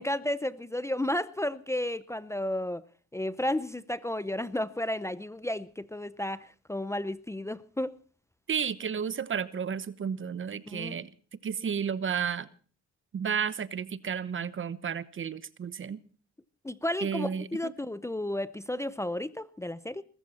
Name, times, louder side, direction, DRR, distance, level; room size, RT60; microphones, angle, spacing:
voice 1, 0.0-2.8 3.1-7.9 10.7-11.0 16.6-20.0, left 1 dB, 10° left, 0.7 m, -32 dB
voice 2, 8.5-11.1 11.4-12.5 13.1-16.0 17.0-17.7, right 7 dB, 40° right, 1.1 m, -32 dB
21.0 x 13.5 x 4.3 m
cardioid pair, 90°, 30 cm